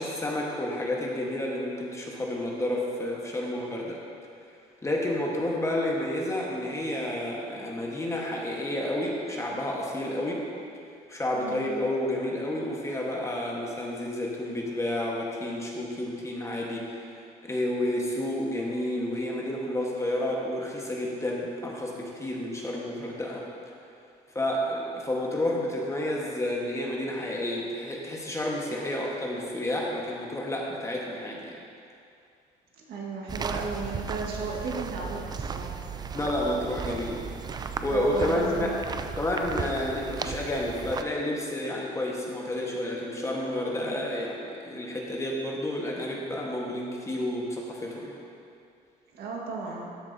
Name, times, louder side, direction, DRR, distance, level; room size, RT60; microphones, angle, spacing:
voice 1, 0.0-4.0 4.8-10.4 11.1-17.0 17.4-23.4 24.3-31.6 36.1-37.2 37.5-38.7 39.1-48.2, left 1 dB, 15° left, -2 dB, 1.3 m, -30 dB
voice 2, 11.3-11.7 32.9-35.8 36.8-37.1 37.9-39.0 49.1-49.9, right 3 dB, 70° right, -2 dB, 1.6 m, -35 dB
sound 1, 33.3-41.0, right 5 dB, 25° right, 0.4 m, -35 dB
13.0 x 7.2 x 2.7 m, 2.4 s
cardioid pair, 110°, 17 cm